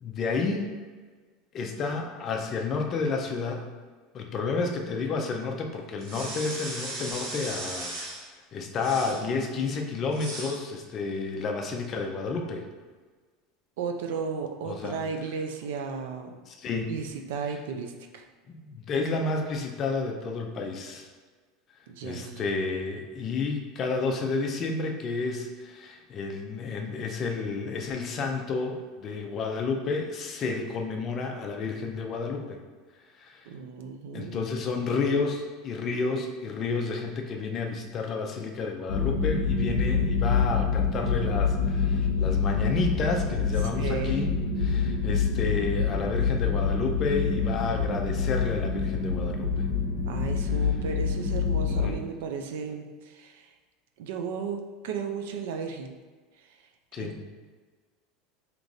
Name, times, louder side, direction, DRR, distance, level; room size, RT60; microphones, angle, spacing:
voice 1, 0.0-0.7 1.5-3.6 4.1-7.9 8.5-12.7 14.6-15.0 16.5-16.9 18.5-21.1 22.0-32.6 33.2-33.5 34.1-44.3 44.6-49.5 51.6-52.1 56.9-57.1, left 4 dB, 25° left, 2 dB, 0.4 m, -31 dB
sound 1, 6.0-8.3 8.8-9.3 10.1-10.6, right 2 dB, 35° right, 0.9 m, -37 dB
voice 2, 13.8-16.3 16.9-18.3 21.9-22.4 33.5-34.4 43.7-44.3 50.1-53.5 54.0-55.9 57.0-57.3, right 5 dB, 75° right, 4 dB, 0.5 m, -34 dB
sound 2, 38.9-51.9, left 5 dB, 60° left, 0.7 m, -26 dB
4.9 x 2.9 x 2.6 m, 1.4 s
supercardioid pair, 175°, 0 cm